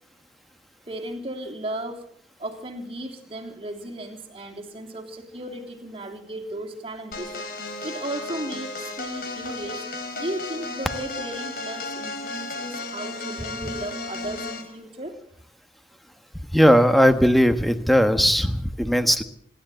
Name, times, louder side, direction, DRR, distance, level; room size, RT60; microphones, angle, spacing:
voice 1, 0.9-2.0 2.4-7.5 7.8-9.9 10.2-15.2, right 1 dB, 30° right, 2 dB, 3.3 m, -35 dB
sound 1, 7.1-14.7, left 3 dB, 50° left, 4.2 m, -34 dB
voice 2, 16.5-19.2, equal, ahead, 8 dB, 1.3 m, -18 dB
26.5 x 12.5 x 7.9 m, 0.67 s
head